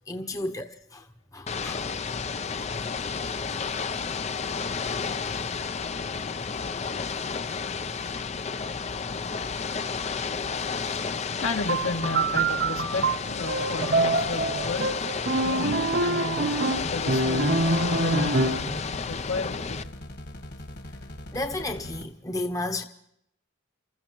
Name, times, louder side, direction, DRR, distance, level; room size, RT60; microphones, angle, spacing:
voice 1, 0.1-0.6 0.9-1.0 1.3-1.8 21.3-22.8, left 2 dB, 15° left, 0.9 m, -32 dB
Ocean / Boat Water vehicle, 1.5-19.8, left 5 dB, 35° left, 0.5 m, -31 dB
voice 2, 11.0-14.9 15.4-16.5 16.8-17.6 18.0-19.9, left 3 dB, 85° left, 2.2 m, -33 dB
sound 1, 11.7-18.8, right 2 dB, 55° right, 1.1 m, -26 dB
sound 2, 16.7-22.0, left 1 dB, 55° left, 1.9 m, -41 dB
28.5 x 15.0 x 3.0 m
head